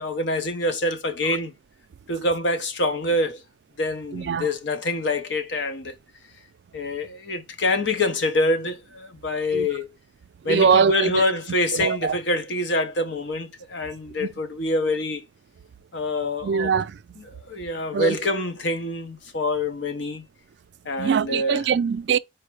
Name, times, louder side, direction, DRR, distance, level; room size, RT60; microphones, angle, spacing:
voice 1, 0.0-1.5 2.1-3.4 3.8-5.9 6.7-9.9 10.4-15.3 15.9-16.7 17.3-20.2 20.8-21.6, left 2 dB, 75° left, 0.9 m, -26 dB
voice 2, 4.1-4.5 9.5-9.7 10.4-11.2 11.7-12.2 14.2-14.3 16.4-17.2 17.9-18.2 21.0-22.2, right 6 dB, 65° right, 0.3 m, -22 dB
4.6 x 2.2 x 4.6 m
head